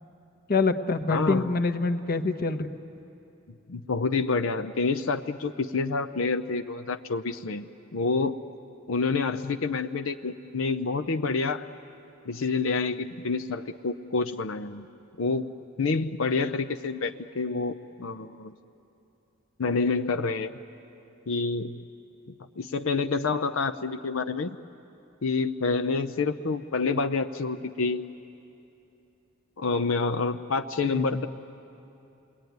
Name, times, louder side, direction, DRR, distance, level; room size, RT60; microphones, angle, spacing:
voice 1, 0.5-2.7 30.9-31.2, left 3 dB, 50° left, 6 dB, 1.1 m, -26 dB
voice 2, 1.1-1.4 3.7-7.7 7.9-8.4 8.9-11.7 12.3-14.9 15.2-15.4 15.8-18.6 19.6-20.5 21.3-21.8 22.6-24.5 25.2-28.0 29.6-31.3, left 4 dB, 85° left, 7 dB, 0.7 m, -28 dB
29.0 x 21.5 x 9.4 m, 2.8 s
head